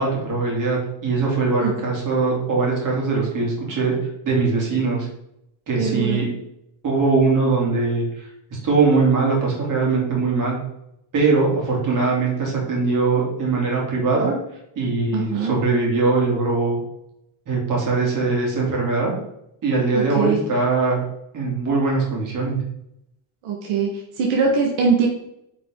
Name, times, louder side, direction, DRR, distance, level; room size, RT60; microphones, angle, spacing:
voice 1, 0.0-3.9 4.2-5.1 5.7-6.3 6.8-10.6 11.1-14.3 14.8-16.8 17.5-19.1 19.6-21.0 21.3-22.6, right 4 dB, 40° right, -3 dB, 3.0 m, -21 dB
voice 2, 5.8-6.2 15.1-15.5 19.9-20.4 23.4-23.9 24.2-25.1, right 5 dB, 75° right, 0 dB, 1.6 m, -21 dB
9.2 x 4.9 x 3.8 m, 0.81 s
cardioid pair, 170°, 48 cm